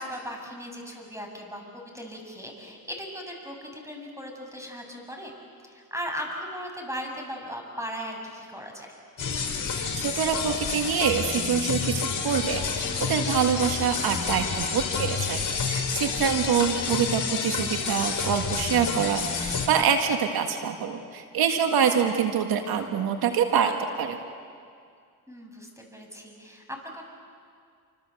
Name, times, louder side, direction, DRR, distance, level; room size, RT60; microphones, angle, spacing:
voice 1, 0.0-5.3 5.6-8.9 16.2-16.3 25.3-27.0, equal, 10° right, 2 dB, 7.4 m, -37 dB
sound 1, 9.2-19.7, left 5 dB, 50° left, 4.9 m, -29 dB
voice 2, 10.0-24.2, right 7 dB, 80° right, 5 dB, 1.8 m, -25 dB
28.0 x 26.0 x 7.9 m, 2.2 s
cardioid pair, 70°, 37 cm